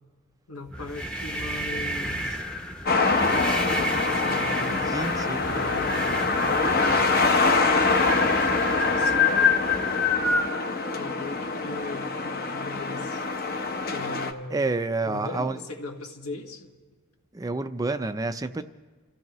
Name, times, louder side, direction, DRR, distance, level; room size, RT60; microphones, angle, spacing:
voice 1, 0.5-2.4 3.2-4.9 5.4-7.0 7.4-10.3 10.9-13.2 13.9-14.7 15.0-16.7, left 2 dB, 75° left, 2 dB, 1.5 m, -39 dB
sound 1, 0.7-10.5, left 3 dB, 5° left, 0.8 m, -28 dB
sound 2, 2.9-14.3, left 3 dB, 45° left, 0.9 m, -25 dB
voice 2, 4.8-5.5 7.8-8.1 14.5-15.6 17.3-18.6, right 3 dB, 15° right, 9 dB, 0.4 m, -29 dB
30.0 x 15.0 x 3.0 m, 1.4 s
head